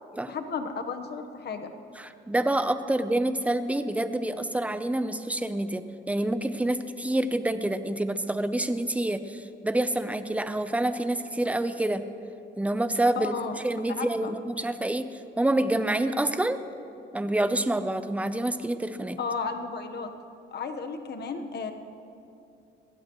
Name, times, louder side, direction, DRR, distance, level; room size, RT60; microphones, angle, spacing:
voice 1, 0.3-1.7 13.1-13.5 14.0-14.4 19.2-20.1 20.5-21.7, left 5 dB, 55° left, 6 dB, 1.3 m, -33 dB
voice 2, 2.0-12.0 12.6-13.3 13.6-16.6 17.1-19.2, right 1 dB, 5° right, 10 dB, 0.7 m, -27 dB
22.0 x 16.5 x 3.1 m, 2.7 s
cardioid pair, 90°, 20 cm